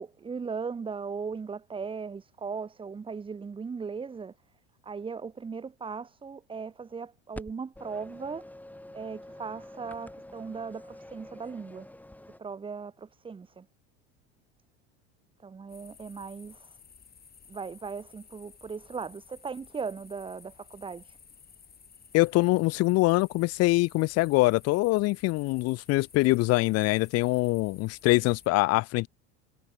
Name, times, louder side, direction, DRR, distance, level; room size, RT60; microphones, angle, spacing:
voice 1, 0.0-4.3 4.8-8.5 8.9-11.9 12.4-13.7 15.4-16.8 17.5-21.2, right 5 dB, 15° right, 0.8 m, -38 dB
sound 1, 7.3-12.4, left 1 dB, 5° left, 6.2 m, -46 dB
sound 2, 15.7-28.5, left 6 dB, 30° left, 7.0 m, -55 dB
voice 2, 22.1-29.1, left 21 dB, 50° left, 0.6 m, -24 dB
supercardioid pair, 95°, 32 cm